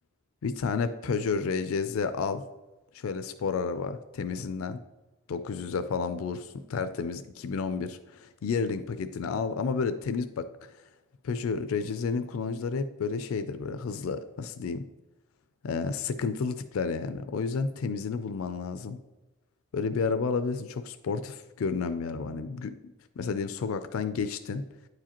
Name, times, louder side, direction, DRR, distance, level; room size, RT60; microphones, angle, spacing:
voice 1, 0.4-2.4 2.9-4.8 5.3-10.5 11.2-14.8 15.6-19.0 19.7-22.7 23.2-24.6, left 5 dB, 85° left, 10 dB, 0.4 m, -31 dB
9.0 x 4.9 x 2.9 m, 1.1 s
head